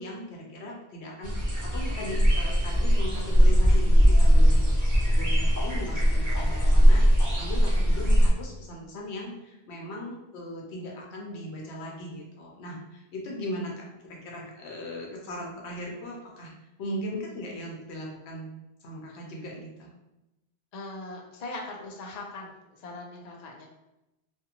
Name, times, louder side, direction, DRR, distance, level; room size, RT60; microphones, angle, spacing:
voice 1, 0.0-7.0 7.4-16.5 16.8-18.5 18.8-19.9, left 1 dB, 85° left, -1 dB, 1.0 m, -38 dB
sound 1, 1.2-8.3, equal, 20° right, 0.7 m, -20 dB
voice 2, 20.7-23.7, left 2 dB, 50° left, 0 dB, 0.5 m, -40 dB
2.6 x 2.4 x 2.8 m, 0.95 s
omnidirectional pair, 1.1 m